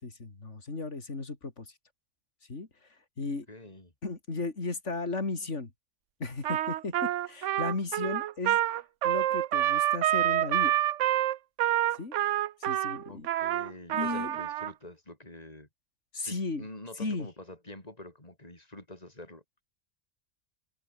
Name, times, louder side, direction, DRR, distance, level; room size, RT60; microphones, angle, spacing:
voice 1, 0.0-1.7 2.5-2.7 3.2-3.5 4.0-5.7 6.2-8.6 9.0-10.8 12.0-12.2 12.6-13.3 13.9-14.4 16.1-16.6 17.0-17.3, left 3 dB, 70° left, 3.5 m, -35 dB
voice 2, 3.5-3.9 13.1-15.7 16.2-19.6, left 1 dB, 30° left, 5.4 m, -46 dB
Trumpet, 6.4-14.7, right 13 dB, 85° right, 1.0 m, -27 dB
open air
omnidirectional pair, 1.3 m